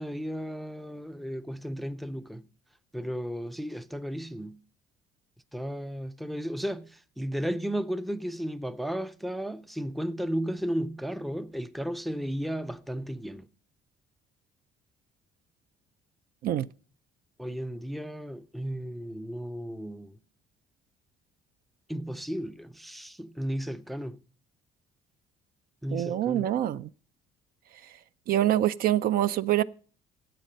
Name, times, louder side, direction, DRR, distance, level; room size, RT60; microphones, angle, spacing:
voice 1, 0.0-2.5 2.9-4.6 5.5-13.5 17.4-20.2 21.9-24.2 25.8-26.4, equal, ahead, 0.4 m, -34 dB
voice 2, 25.9-26.9 28.3-29.6, right 12 dB, 60° right, 0.4 m, -25 dB
12.0 x 8.2 x 5.2 m
cardioid pair, 110°, 17 cm